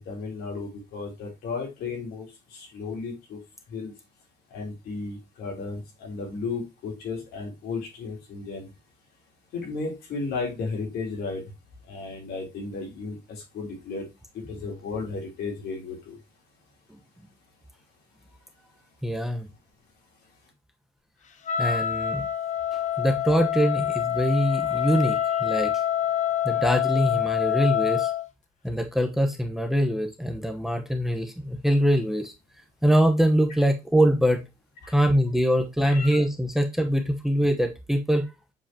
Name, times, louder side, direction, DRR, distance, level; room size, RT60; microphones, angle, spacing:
voice 1, 0.0-2.3 2.5-3.4 3.7-3.9 4.5-8.7 9.5-11.4 11.9-14.1 14.3-16.2 34.8-34.9 35.8-36.2, left 4 dB, 70° left, -1 dB, 3.3 m, -34 dB
voice 2, 19.0-19.5 21.6-22.3 23.0-25.7 26.4-28.1 28.6-32.3 32.8-34.4 34.9-38.2, equal, ahead, 4 dB, 1.0 m, -23 dB
Wind instrument woodwind instrument, 21.4-28.2, left 10 dB, 45° left, 1.0 m, -26 dB
7.6 x 4.8 x 2.8 m, 0.24 s
cardioid pair, 110°, 17 cm